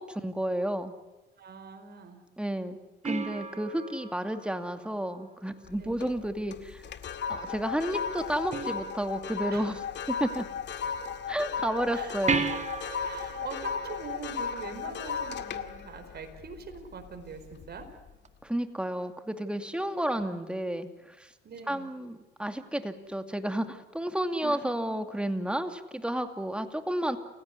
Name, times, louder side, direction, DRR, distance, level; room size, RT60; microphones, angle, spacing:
voice 1, 0.1-0.9 2.4-2.8 3.0-6.9 7.3-9.8 10.1-10.5 11.3-12.4 18.4-21.3 21.7-27.2, right 1 dB, 5° right, 7 dB, 2.5 m, -31 dB
voice 2, 1.4-2.2 5.8-6.0 9.5-9.7 11.9-12.1 13.0-17.9 20.1-20.3 21.4-21.9 24.4-25.0, right 5 dB, 55° right, 8 dB, 4.8 m, -43 dB
sound 1, 3.0-5.7 8.5-9.5 12.3-15.2 18.2-18.3, right 5 dB, 35° right, 2.1 m, -36 dB
sound 2, 5.7-6.2 6.5-17.1 17.5-17.8, left 6 dB, 65° left, 2.0 m, -35 dB
29.0 x 17.0 x 9.7 m, 1.1 s
cardioid pair, 90°, 20 cm